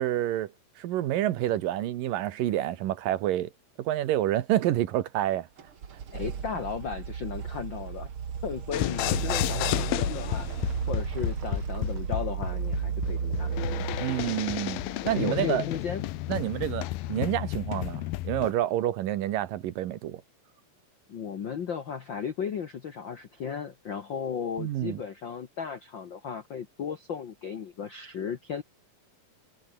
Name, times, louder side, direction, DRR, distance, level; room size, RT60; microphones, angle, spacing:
voice 1, 0.0-3.5 3.8-5.5 14.0-14.8 15.1-15.6 16.3-20.2 24.6-25.0, right 13 dB, 75° right, 2.8 m, -28 dB
sound 1, 5.6-16.4, right 7 dB, 45° right, 2.3 m, -34 dB
voice 2, 6.1-8.1 8.4-13.5 15.0-16.0 21.1-28.6, left 7 dB, 65° left, 1.2 m, -35 dB
sound 2, 8.7-18.5, left 17 dB, 90° left, 2.7 m, -32 dB
omnidirectional pair, 4.1 m